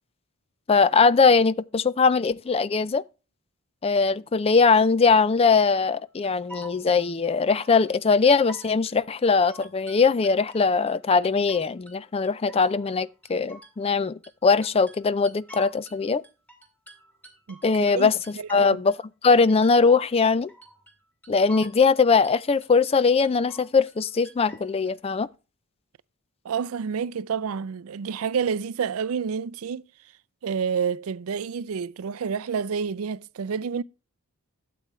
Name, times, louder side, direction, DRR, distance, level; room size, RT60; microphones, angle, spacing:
voice 1, 0.7-3.0 3.8-16.2 17.6-19.0 19.2-20.5 21.3-25.3, left 4 dB, 25° left, 0.4 m, -21 dB
sound 1, 6.2-7.9 8.2-8.9 9.2-11.0 11.2-12.0 12.2-16.0 16.2-19.0 19.2-20.0 20.2-21.0 21.2-22.0 22.2-22.9 23.2-24.0 24.2-24.9, right 1 dB, 5° left, 2.0 m, -48 dB
voice 2, 17.5-18.8 26.4-29.8 30.4-33.8, right 6 dB, 70° right, 0.4 m, -29 dB
12.5 x 7.7 x 3.1 m
head